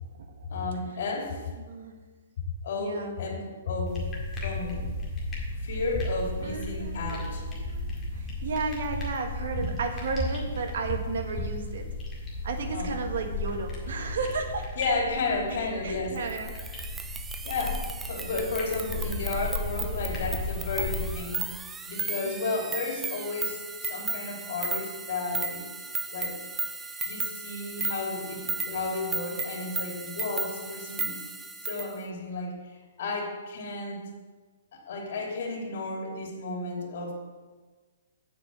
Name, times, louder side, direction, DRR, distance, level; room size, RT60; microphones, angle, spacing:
voice 1, 0.5-1.4 2.6-4.1 4.4-4.9 5.6-7.4 12.7-12.9 14.8-16.2 17.4-17.8 18.1-21.4 21.8-25.6 26.1-26.4 27.0-31.1 31.6-34.0 34.7-37.1, left 3 dB, 55° left, 0 dB, 2.8 m, -32 dB
voice 2, 2.8-3.2 6.4-7.9 8.1-11.9 12.4-14.7 15.8-17.0 22.2-22.5, right 4 dB, 65° right, 5 dB, 1.5 m, -33 dB
sound 1, 3.8-21.2, left 2 dB, 10° left, 1.9 m, -35 dB
sound 2, 16.3-31.9, right 4 dB, 10° right, 0.3 m, -35 dB
7.4 x 6.3 x 7.6 m, 1.4 s
hypercardioid pair, 170°, 0 cm